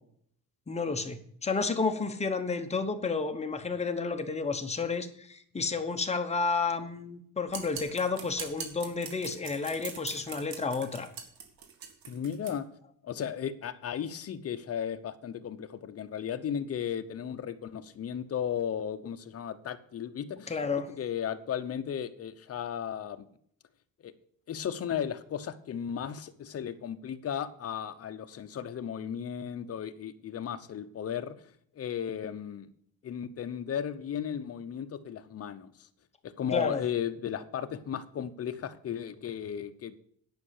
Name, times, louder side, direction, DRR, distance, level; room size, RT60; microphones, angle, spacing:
voice 1, 0.7-11.1 20.5-20.9 36.5-36.8, left 4 dB, 20° left, 6 dB, 1.0 m, -31 dB
sound 1, 7.5-12.5, right 6 dB, 90° right, 1.9 m, -42 dB
voice 2, 12.1-12.7 13.0-23.2 24.0-24.1 24.5-31.5 31.8-32.7 33.0-35.9 36.2-40.0, left 8 dB, 45° left, 9 dB, 0.8 m, -35 dB
10.5 x 5.6 x 8.2 m, 0.65 s
cardioid pair, 150°, 34 cm